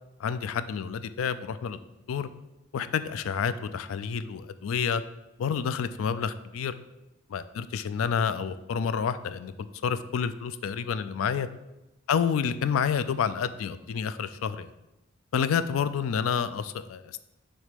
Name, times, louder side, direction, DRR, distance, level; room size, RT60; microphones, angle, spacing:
voice 1, 0.2-1.8 2.1-2.3 2.7-5.0 5.4-6.7 7.3-11.5 12.1-14.7 15.3-17.2, left 7 dB, 85° left, 13 dB, 0.4 m, -29 dB
6.3 x 3.2 x 5.1 m, 0.97 s
head